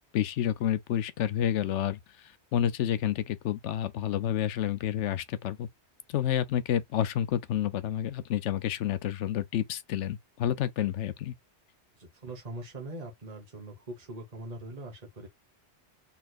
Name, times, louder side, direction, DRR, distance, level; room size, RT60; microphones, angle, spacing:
voice 1, 0.1-5.7 6.1-11.3, left 10 dB, 85° left, 0.9 m, -29 dB
voice 2, 12.0-15.3, right 2 dB, 35° right, 1.2 m, -42 dB
4.2 x 3.4 x 2.4 m
omnidirectional pair, 1.2 m